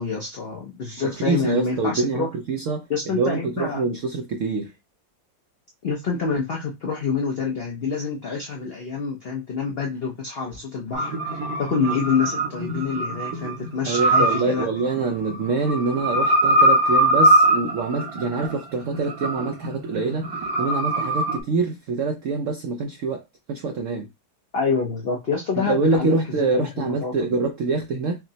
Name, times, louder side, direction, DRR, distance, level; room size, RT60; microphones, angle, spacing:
voice 1, 0.0-2.3 2.9-3.8 5.8-11.1 11.6-14.7 24.5-27.3, left 5 dB, 90° left, 0.5 m, -27 dB
voice 2, 1.0-2.9 3.1-4.7 13.9-23.2 23.5-24.1 25.6-28.2, right 4 dB, 80° right, 0.7 m, -25 dB
sound 1, 10.9-21.4, right 1 dB, 60° right, 1.2 m, -22 dB
5.9 x 2.0 x 2.7 m
omnidirectional pair, 2.0 m